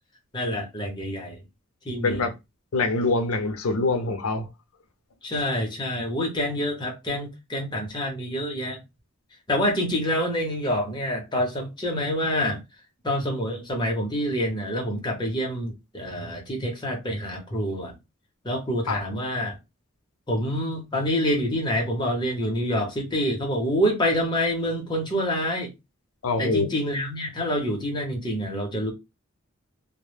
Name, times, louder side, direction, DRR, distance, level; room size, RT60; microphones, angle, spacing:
voice 1, 0.3-1.4 1.8-2.2 5.2-8.8 9.5-12.6 13.0-17.9 18.4-19.6 20.3-25.7 26.4-28.9, equal, 20° left, 0.7 m, -27 dB
voice 2, 2.7-4.5 18.9-19.0 26.2-26.7, left 3 dB, 80° left, 0.5 m, -24 dB
2.1 x 2.0 x 3.1 m
head